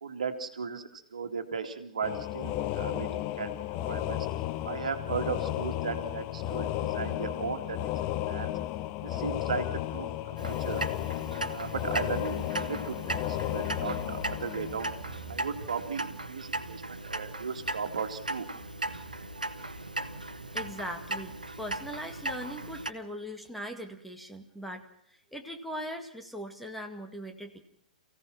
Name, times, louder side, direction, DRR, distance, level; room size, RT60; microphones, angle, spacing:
voice 1, 0.0-3.5 3.9-4.2 4.6-7.9 8.3-8.5 9.0-10.8 11.5-14.9 15.3-18.5, right 5 dB, 60° right, 6 dB, 2.4 m, -36 dB
sound 1, 2.0-15.5, left 13 dB, 30° left, 0.9 m, -34 dB
Clock, 10.4-22.9, right 2 dB, 80° right, 1.6 m, -37 dB
voice 2, 20.5-24.9 25.3-27.6, equal, ahead, 3 dB, 2.2 m, -40 dB
28.5 x 16.5 x 5.9 m, 0.70 s
figure-of-eight pair, 110°, 4 cm